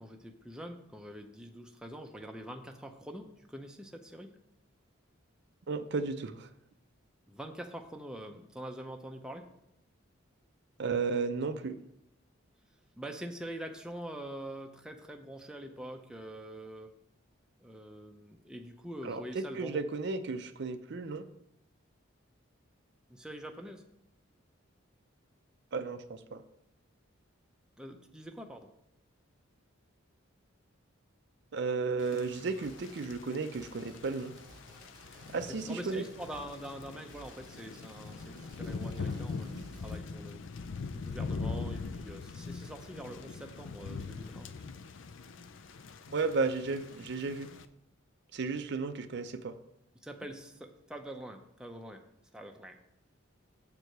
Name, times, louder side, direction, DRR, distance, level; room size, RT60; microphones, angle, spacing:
voice 1, 0.0-4.4 7.3-9.6 13.0-16.9 17.6-19.8 23.1-23.9 27.8-28.7 35.1-40.4 40.9-44.5 50.0-52.1 52.3-52.8, right 1 dB, 5° right, 4 dB, 0.5 m, -45 dB
voice 2, 5.7-6.5 10.8-11.8 19.0-21.3 25.7-26.4 31.5-34.4 35.3-36.0 46.1-47.5 48.3-49.6, right 4 dB, 55° right, 9 dB, 0.5 m, -34 dB
Thunder / Rain, 32.0-47.7, left 4 dB, 65° left, 0.5 m, -42 dB
sound 1, 32.6-33.2 33.5-40.0, right 1 dB, 20° right, 0.9 m, -56 dB
7.4 x 4.6 x 6.6 m, 0.82 s
head